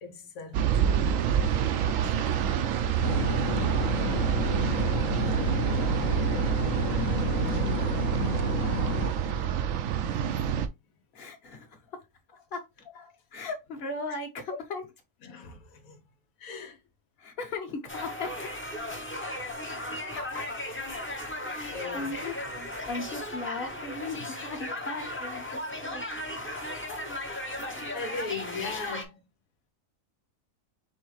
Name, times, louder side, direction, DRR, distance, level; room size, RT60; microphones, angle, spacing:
voice 1, 0.0-2.9 7.6-7.7 12.9-13.2 15.2-16.0 16.4-16.8 18.4-18.5 21.6-22.1 27.1-27.2 27.7-29.2, left 4 dB, 85° left, 1.3 m, -40 dB
sound 1, 0.5-10.7, right 9 dB, 75° right, 1.0 m, -27 dB
sound 2, 3.0-9.1, left 1 dB, 70° left, 1.1 m, -30 dB
voice 2, 11.1-11.9 12.5-12.6 13.3-14.8 17.2-18.5 20.1-20.4 21.4-22.3 22.8-26.0 26.9-27.0, left 3 dB, 45° left, 1.3 m, -37 dB
sound 3, 17.9-29.1, left 1 dB, 10° left, 0.6 m, -36 dB
4.9 x 3.4 x 3.2 m
omnidirectional pair, 1.4 m